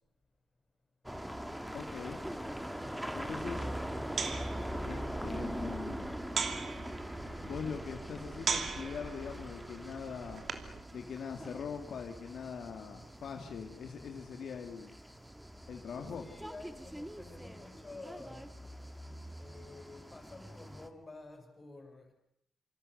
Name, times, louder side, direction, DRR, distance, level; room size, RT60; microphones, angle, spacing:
sound 1, 1.0-20.9, equal, 5° right, 1.9 m, -42 dB
voice 1, 1.7-2.3 3.1-3.7 4.8-6.1 7.4-10.4 10.9-15.0 15.7-16.2, left 6 dB, 65° left, 4 dB, 2.2 m, -42 dB
sound 2, 3.2-10.8, right 5 dB, 50° right, 2.9 m, -40 dB
voice 2, 16.1-18.5 19.4-22.1, left 2 dB, 25° left, 5 dB, 7.1 m, -50 dB
27.0 x 26.0 x 6.6 m, 0.73 s
cardioid pair, 110°, 0 cm